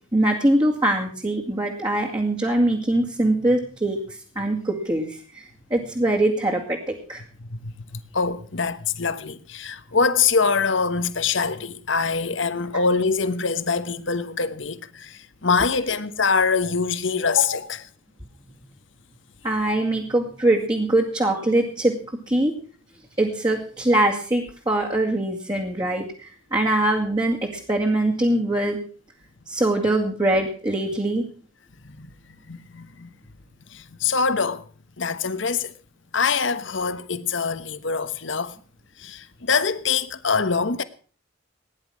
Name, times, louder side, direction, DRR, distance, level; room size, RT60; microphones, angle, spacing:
voice 1, 0.1-7.2 19.4-22.0 22.3-22.5 23.2-28.8 29.5-31.2, right 1 dB, 20° right, 2.1 m, -23 dB
voice 2, 7.4-17.9 31.8-33.1 33.7-34.7 35.0-35.7 36.1-38.6 39.0-40.8, left 5 dB, 65° left, 1.2 m, -24 dB
17.5 x 10.5 x 6.3 m
head